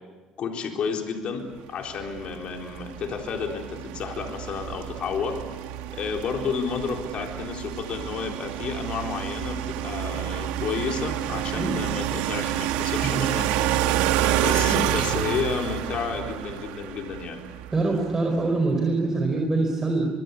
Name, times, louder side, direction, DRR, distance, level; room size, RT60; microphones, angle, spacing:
voice 1, 0.4-5.4 5.9-13.5 14.4-17.4, left 5 dB, 55° left, 2 dB, 3.9 m, -31 dB
sound 1, 2.0-18.1, right 12 dB, 90° right, 1.6 m, -29 dB
voice 2, 17.7-20.1, right 3 dB, 20° right, 2 dB, 4.5 m, -24 dB
25.5 x 22.5 x 8.4 m, 1.4 s
cardioid pair, 105°, 2 cm